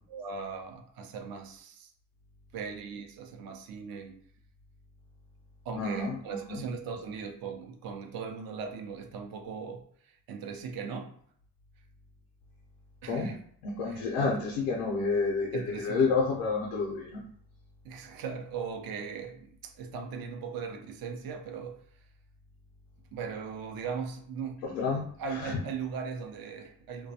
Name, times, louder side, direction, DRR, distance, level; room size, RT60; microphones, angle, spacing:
voice 1, 0.1-1.9 2.5-4.2 5.6-11.1 13.0-13.4 13.9-14.3 15.5-16.0 17.8-21.8 23.1-24.6 25.2-27.1, right 6 dB, 55° right, 0.6 m, -39 dB
voice 2, 5.7-7.1 13.0-17.2 24.6-25.6, left 4 dB, 90° left, 0.6 m, -30 dB
2.2 x 2.1 x 2.7 m
hypercardioid pair, 55°, 44 cm